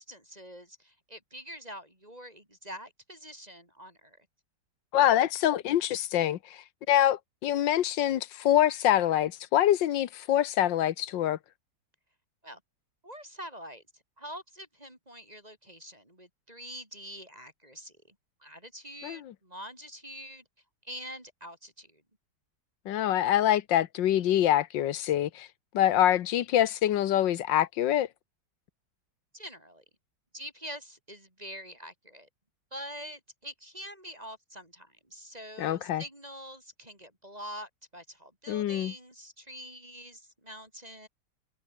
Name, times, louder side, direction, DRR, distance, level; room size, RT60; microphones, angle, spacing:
voice 1, 0.0-4.3 12.4-12.6 13.0-13.8 14.2-18.2 18.4-20.4 20.8-22.0 29.3-29.8 30.3-32.3 32.7-41.1, equal, 20° right, 5.3 m, -45 dB
voice 2, 4.9-11.4 19.0-19.3 22.8-25.5 25.7-28.1 35.6-36.0 38.5-38.9, left 12 dB, 85° left, 1.6 m, -25 dB
omnidirectional pair, 1.9 m